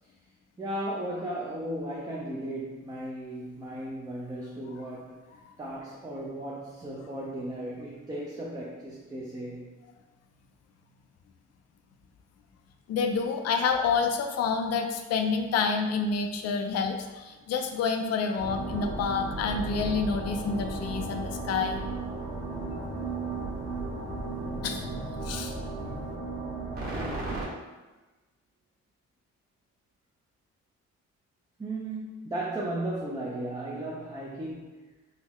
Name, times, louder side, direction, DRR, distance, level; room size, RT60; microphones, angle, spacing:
voice 1, 0.6-9.8 31.6-34.9, right 1 dB, 15° right, -4 dB, 0.4 m, -36 dB
voice 2, 12.9-21.8 24.5-25.5 25.8-25.9, left 5 dB, 60° left, 5 dB, 0.4 m, -28 dB
sound 1, 18.4-27.5, right 3 dB, 30° right, 1.2 m, -34 dB
3.8 x 2.1 x 2.9 m, 1.2 s
cardioid pair, 90°, 30 cm